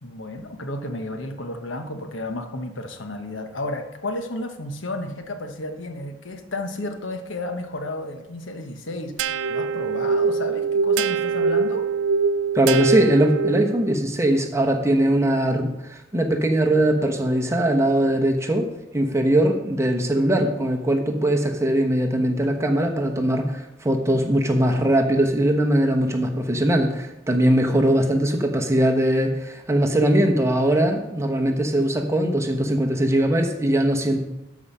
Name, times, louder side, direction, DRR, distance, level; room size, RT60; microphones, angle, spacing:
voice 1, 0.0-11.9, left 2 dB, 75° left, 6 dB, 1.1 m, -32 dB
sound 1, 9.2-14.0, right 5 dB, 75° right, 0.5 m, -23 dB
voice 2, 12.5-34.2, right 1 dB, 15° right, 3 dB, 1.0 m, -21 dB
13.0 x 4.9 x 5.7 m, 0.93 s
head